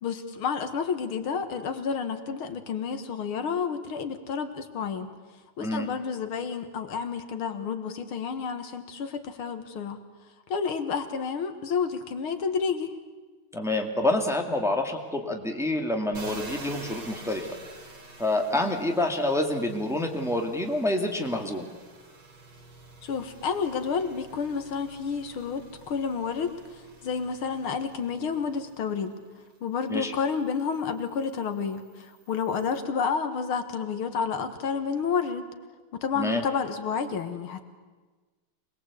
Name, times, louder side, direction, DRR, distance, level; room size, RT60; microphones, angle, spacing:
voice 1, 0.0-5.1 5.6-10.0 10.5-12.9 23.0-26.5 27.0-29.1 29.6-35.4 36.0-37.6, left 6 dB, 90° left, 8 dB, 2.4 m, -30 dB
voice 2, 13.5-17.5 18.2-21.7 29.9-30.1 36.2-36.4, left 1 dB, ahead, 3 dB, 1.9 m, -27 dB
sound 1, 16.1-29.5 29.9-32.8, right 2 dB, 55° right, 3.6 m, -48 dB
25.5 x 20.0 x 8.3 m, 1.3 s
omnidirectional pair, 2.3 m